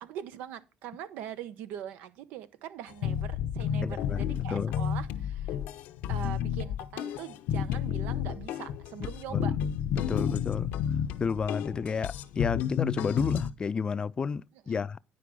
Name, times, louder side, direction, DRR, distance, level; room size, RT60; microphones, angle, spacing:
voice 1, 0.0-5.6 6.1-9.5 14.7-14.8, right 9 dB, 85° right, 0.9 m, -42 dB
sound 1, 3.0-13.5, left 9 dB, 85° left, 0.8 m, -31 dB
voice 2, 3.8-4.7 9.3-9.5 10.0-10.7 11.2-15.0, left 5 dB, 30° left, 0.4 m, -31 dB
9.9 x 4.7 x 6.2 m
cardioid pair, 105°, 3 cm